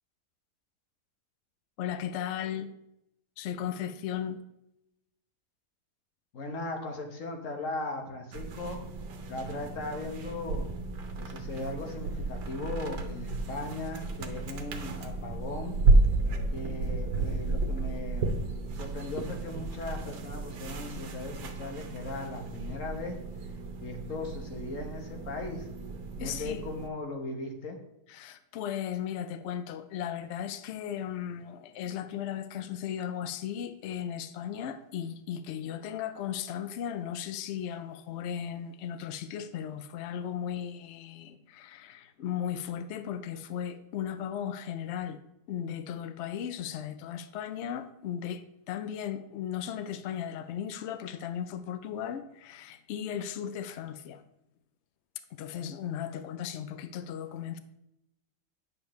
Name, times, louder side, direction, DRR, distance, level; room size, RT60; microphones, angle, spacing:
voice 1, 1.8-2.7 3.4-4.4 26.2-26.6 28.1-45.2 45.5-54.2 55.3-57.6, left 9 dB, 80° left, 0.6 m, -36 dB
voice 2, 6.3-8.8 9.3-10.7 11.2-15.8 16.5-18.4 18.7-23.2 23.8-25.7 26.2-27.8, left 2 dB, 55° left, 1.4 m, -38 dB
sound 1, 8.3-26.9, right 3 dB, 85° right, 1.5 m, -32 dB
9.6 x 6.6 x 3.1 m
omnidirectional pair, 1.8 m